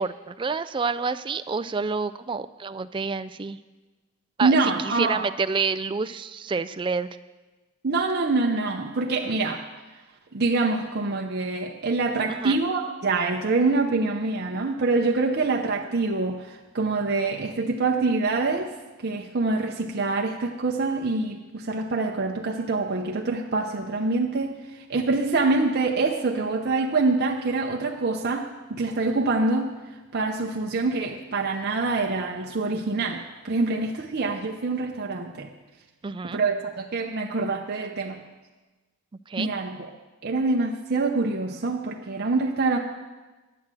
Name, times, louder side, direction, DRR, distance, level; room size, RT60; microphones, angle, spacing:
voice 1, 0.0-3.6 4.4-4.6 4.8-7.1 12.4-12.6 36.0-36.4 39.3-39.5, right 4 dB, 20° right, 12 dB, 0.3 m, -28 dB
voice 2, 4.4-5.3 7.8-9.6 10.3-18.7 19.0-29.7 30.1-35.5 36.3-38.2 39.4-39.9 40.2-42.8, right 3 dB, 50° right, 1 dB, 0.7 m, -25 dB
11.0 x 8.5 x 7.6 m, 1.2 s
head